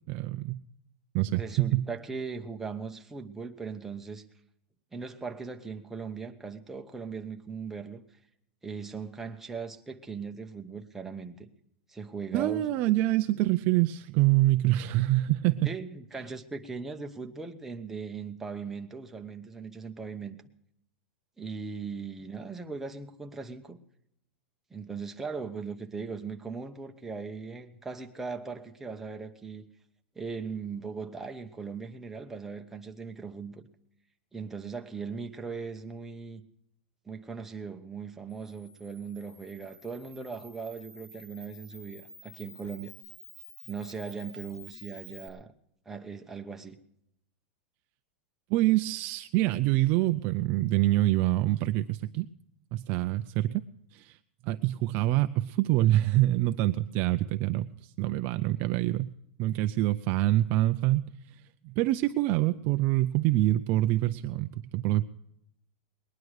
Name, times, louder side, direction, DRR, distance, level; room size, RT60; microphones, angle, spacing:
voice 1, 0.1-0.6 1.1-1.9 12.3-15.7 48.5-52.3 52.7-53.6 53.9-54.2 54.4-59.1 59.4-61.1 61.6-65.0, right 16 dB, 35° right, 0.4 m, -26 dB
voice 2, 1.3-4.2 4.9-8.0 8.6-11.5 11.9-12.7 15.6-20.4 21.4-23.8 24.7-29.7 30.1-33.7 34.3-36.4 37.1-42.9 43.7-45.5 45.9-46.8, right 5 dB, 5° right, 0.9 m, -39 dB
Camera, 38.3-45.3, left 1 dB, 25° left, 3.2 m, -51 dB
20.5 x 11.0 x 4.8 m
supercardioid pair, 160°, 6 cm